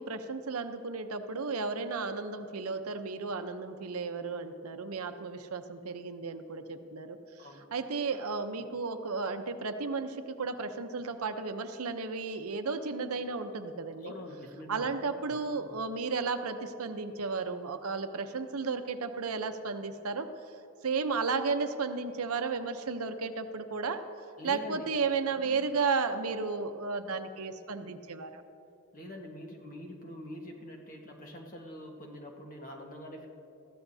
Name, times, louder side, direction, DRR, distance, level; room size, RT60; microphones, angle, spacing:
voice 1, 0.0-14.1 14.7-20.3 20.8-24.0 24.4-28.4, right 4 dB, 90° right, 8 dB, 0.8 m, -34 dB
voice 2, 7.4-7.7 14.0-14.9 24.4-24.9 28.9-33.3, left 1 dB, 40° left, 1 dB, 1.5 m, -44 dB
20.5 x 14.5 x 2.7 m, 2.6 s
head